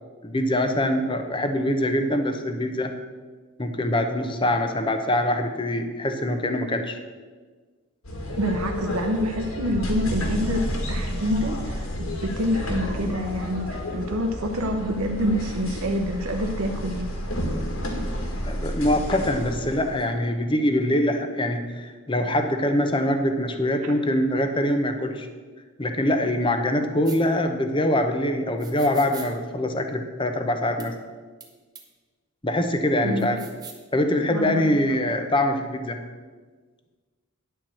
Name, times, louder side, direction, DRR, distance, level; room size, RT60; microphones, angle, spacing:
voice 1, 0.2-2.9 3.6-7.0 18.4-25.3 25.8-30.9 32.4-33.4 33.9-36.0, left 1 dB, 25° left, 7 dB, 0.7 m, -24 dB
sound 1, 8.0-20.0, equal, 75° left, 1.9 m, -31 dB
voice 2, 8.4-10.6 10.9-17.1 33.0-33.4 34.3-34.7, equal, 85° right, 4 dB, 0.8 m, -27 dB
sound 2, 27.0-27.2 28.6-29.3 30.8-30.9 31.4-31.5 31.7-31.8 33.2-33.8, right 5 dB, 20° right, 0.9 m, -42 dB
10.5 x 4.6 x 7.7 m, 1.4 s
head